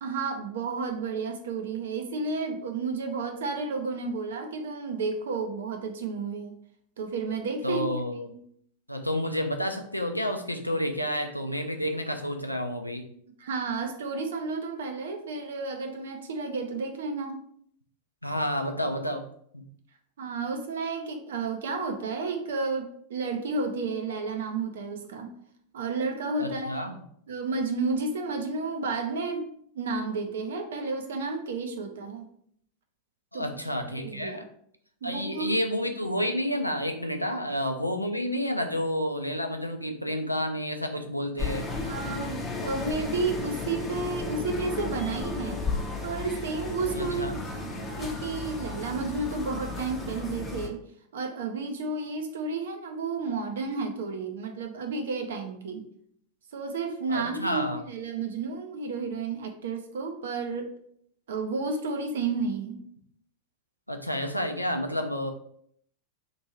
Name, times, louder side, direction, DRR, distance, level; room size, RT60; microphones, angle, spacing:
voice 1, 0.0-6.5 7.0-8.0 13.4-17.3 20.2-25.3 25.7-26.9 27.3-32.3 33.3-33.4 33.9-34.5 35.0-35.6 37.3-37.4 41.8-45.6 46.0-50.8 51.1-55.9 56.5-60.7 61.3-62.8, right 4 dB, 60° right, 5 dB, 0.6 m, -32 dB
voice 2, 7.6-8.3 8.9-13.1 18.2-19.2 19.5-19.6 26.4-27.0 33.3-34.5 35.0-41.7 46.9-47.4 57.1-57.8 63.9-65.3, equal, 90° left, 5 dB, 0.4 m, -30 dB
sound 1, 41.4-50.7, left 3 dB, 15° left, 0.7 m, -34 dB
3.0 x 2.6 x 4.3 m, 0.66 s
figure-of-eight pair, 90°, 0 cm